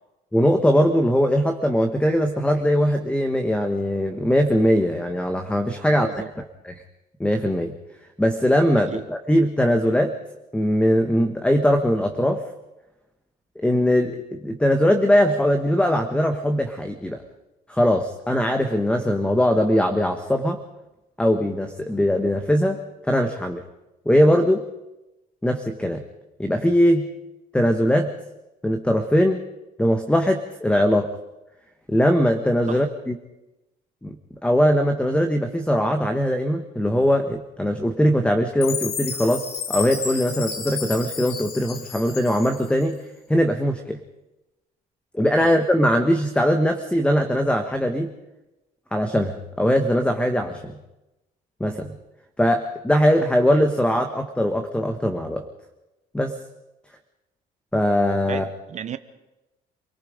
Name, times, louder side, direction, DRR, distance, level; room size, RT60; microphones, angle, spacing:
voice 1, 0.3-6.8 7.2-7.7 8.2-10.1 10.5-12.5 13.5-17.2 17.7-20.6 21.2-23.6 24.0-24.7 25.4-26.0 26.4-27.1 27.5-28.1 28.6-29.4 29.8-31.1 31.9-33.1 34.0-34.2 34.4-43.0 43.3-44.0 45.1-48.1 48.9-50.7 51.6-51.9 52.4-55.5 56.1-56.4 57.7-58.4, equal, 5° left, 6 dB, 1.5 m, -21 dB
voice 2, 6.0-6.3 8.7-9.0 32.7-32.8 45.4-45.5 58.3-59.0, right 8 dB, 45° right, 11 dB, 1.1 m, -34 dB
Chime, 38.6-42.8, left 6 dB, 65° left, 3.3 m, -32 dB
28.0 x 18.5 x 5.2 m, 0.98 s
cardioid pair, 110°, 17 cm